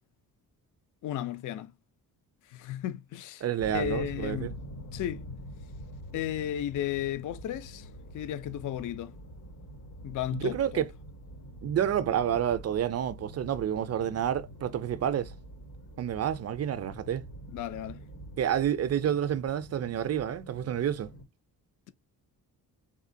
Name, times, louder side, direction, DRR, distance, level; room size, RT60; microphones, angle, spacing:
voice 1, 1.0-1.7 2.5-4.5 4.9-5.2 6.1-9.1 10.0-10.8 17.5-18.0, left 11 dB, 55° left, 0.5 m, -34 dB
voice 2, 3.4-4.5 10.3-10.9 11.6-15.3 16.0-17.2 18.4-21.1, right 9 dB, 45° right, 0.4 m, -29 dB
sound 1, 3.6-21.2, equal, 90° left, 2.5 m, -45 dB
3.6 x 2.7 x 2.5 m
cardioid pair, 130°, 38 cm